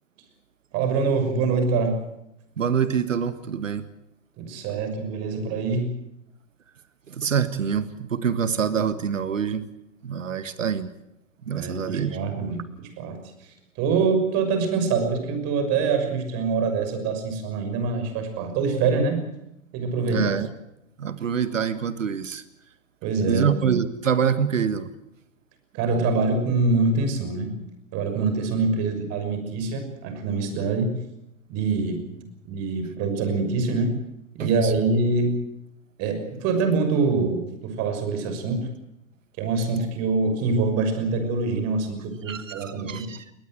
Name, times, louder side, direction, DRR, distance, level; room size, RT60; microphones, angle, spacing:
voice 1, 0.7-2.0 4.4-5.9 11.5-19.3 19.7-20.3 23.0-23.5 25.7-27.5 27.9-31.0 31.5-34.0 34.3-35.4 36.0-38.7 39.4-43.1, right 4 dB, 40° right, 8 dB, 6.2 m, -25 dB
voice 2, 2.6-3.8 7.1-9.6 10.0-10.9 11.4-12.2 20.0-20.5 21.0-22.4 23.2-24.9 34.4-34.7 42.3-43.2, right 7 dB, 80° right, 13 dB, 1.7 m, -25 dB
22.0 x 19.5 x 7.8 m, 0.83 s
figure-of-eight pair, 100°, 38 cm